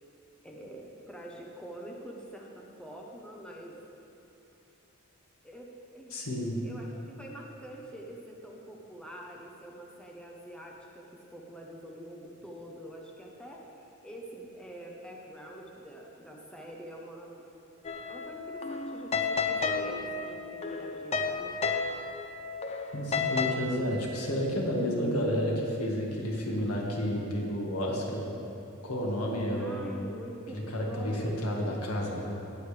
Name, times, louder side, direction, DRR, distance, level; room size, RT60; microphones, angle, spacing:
voice 1, 0.4-3.8 5.4-6.2 6.6-13.7 14.0-17.5 18.1-21.5 29.5-31.4, right 1 dB, 5° left, -2 dB, 0.9 m, -45 dB
voice 2, 6.1-6.6 22.9-28.3 28.8-30.0 30.5-32.4, equal, 85° left, -2 dB, 1.8 m, -31 dB
sound 1, 17.8-23.5, left 5 dB, 30° left, 0.5 m, -32 dB
18.0 x 7.8 x 3.4 m, 2.9 s
head